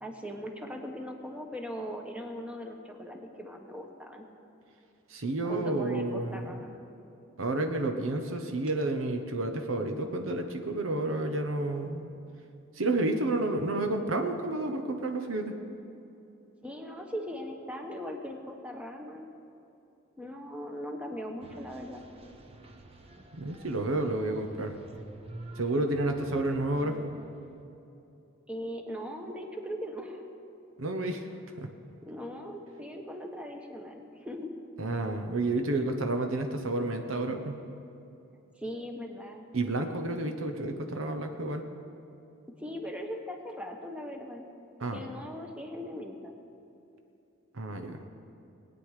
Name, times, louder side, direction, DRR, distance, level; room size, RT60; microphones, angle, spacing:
voice 1, 0.0-4.3 5.5-6.7 16.6-19.3 20.2-22.0 28.5-30.2 32.0-34.5 38.6-39.5 42.6-44.4 44.9-46.3, equal, 5° right, 2 dB, 1.1 m, -39 dB
voice 2, 5.1-6.5 7.4-12.0 12.8-15.5 23.3-24.7 25.6-27.0 30.8-31.3 31.6-31.7 34.8-37.6 39.5-41.6 44.8-45.0 47.5-48.0, right 2 dB, 80° right, 5 dB, 1.0 m, -30 dB
sound 1, 21.4-27.6, right 1 dB, 30° right, 0.9 m, -49 dB
20.0 x 9.2 x 4.9 m, 2.7 s
head